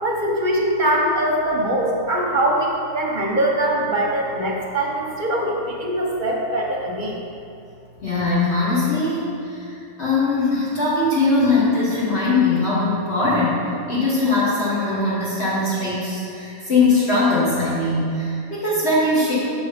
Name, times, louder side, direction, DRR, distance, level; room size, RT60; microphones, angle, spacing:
voice 1, 0.0-7.2, right 1 dB, 45° right, -2 dB, 0.9 m, -22 dB
voice 2, 8.0-19.3, left 2 dB, 50° left, -8 dB, 1.6 m, -21 dB
5.9 x 5.8 x 4.9 m, 2.5 s
omnidirectional pair, 1.4 m